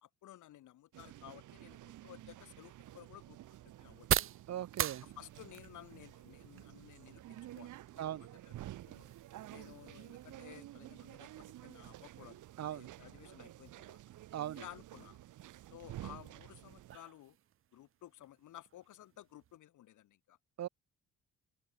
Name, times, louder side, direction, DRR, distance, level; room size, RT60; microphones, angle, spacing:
voice 1, 0.0-3.4 3.8-4.1 5.0-8.5 8.9-9.1 9.5-14.0 14.5-15.2 15.7-17.4 17.7-20.4, left 13 dB, 80° left, 5.5 m, -55 dB
sound 1, 0.9-17.0, right 14 dB, 85° right, 5.3 m, -51 dB
sound 2, 2.0-19.6, right 11 dB, 45° right, 0.5 m, -44 dB
voice 2, 4.5-5.0 8.0-8.3 12.6-12.9 14.3-14.6 20.6-20.7, right 11 dB, 60° right, 1.1 m, -39 dB
cardioid pair, 90°, 30 cm